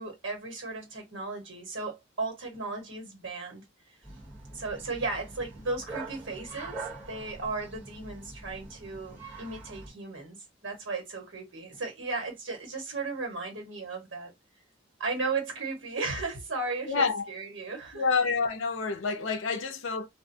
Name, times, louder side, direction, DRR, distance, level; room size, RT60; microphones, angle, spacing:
voice 1, 0.0-3.6 4.5-14.3 15.0-18.0, right 3 dB, 75° right, 1.3 m, -35 dB
Bark, 4.0-9.9, right 3 dB, 10° right, 1.1 m, -43 dB
voice 2, 16.9-17.2 17.9-20.1, left 5 dB, 75° left, 0.5 m, -28 dB
2.4 x 2.2 x 2.6 m
head